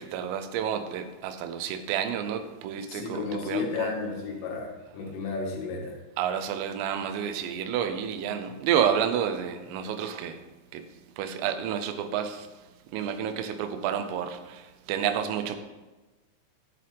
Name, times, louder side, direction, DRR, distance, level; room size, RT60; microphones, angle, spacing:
voice 1, 0.0-3.9 6.2-10.4 10.7-10.8 11.2-12.5 12.9-14.6 14.9-15.6, right 8 dB, 85° right, 9 dB, 3.4 m, -30 dB
voice 2, 2.9-6.0, left 4 dB, 80° left, -1 dB, 4.2 m, -32 dB
11.5 x 9.8 x 3.4 m, 1.1 s
omnidirectional pair, 5.7 m